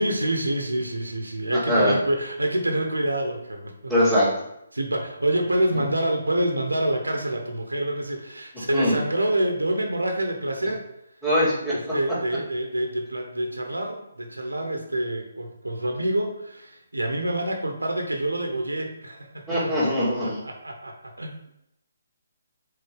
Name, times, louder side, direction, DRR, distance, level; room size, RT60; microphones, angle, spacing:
voice 1, 0.0-3.9 4.7-10.8 11.7-19.4 20.0-21.3, right 1 dB, 80° right, 4 dB, 1.0 m, -27 dB
voice 2, 1.5-1.9 3.9-4.3 8.7-9.0 11.2-11.7 19.5-20.4, equal, 5° left, -16 dB, 2.2 m, -21 dB
6.7 x 4.2 x 3.6 m, 0.82 s
figure-of-eight pair, 140°, 0 cm